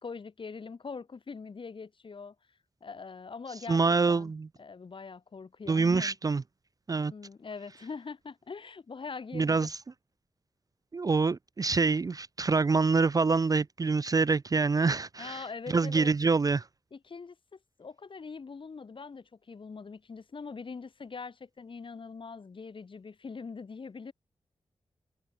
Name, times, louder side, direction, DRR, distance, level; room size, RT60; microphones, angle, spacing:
voice 1, 0.0-2.3 2.8-4.3 4.6-6.2 7.1-9.7 15.2-16.1 16.9-24.1, left 5 dB, 55° left, 2.6 m, -43 dB
voice 2, 3.7-4.5 5.7-6.4 6.9-7.1 9.3-9.8 10.9-15.4 15.7-16.7, right 4 dB, 35° right, 0.5 m, -26 dB
wide cardioid pair, 120°, 11 cm